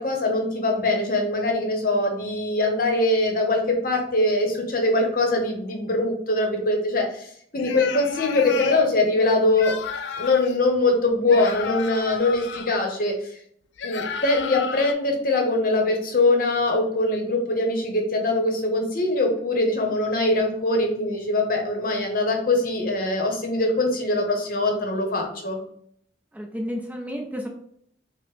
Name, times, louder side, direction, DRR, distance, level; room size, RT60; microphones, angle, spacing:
voice 1, 0.0-7.3 7.5-9.7 10.2-13.3 13.8-25.6, left 2 dB, 50° left, 2 dB, 0.8 m, -22 dB
sound 1, 7.6-8.9 9.5-10.6 11.3-12.7 13.8-14.9, left 6 dB, 75° left, 0.3 m, -32 dB
voice 2, 26.3-27.5, equal, 10° right, 1 dB, 0.4 m, -31 dB
4.7 x 2.0 x 3.1 m, 0.66 s
head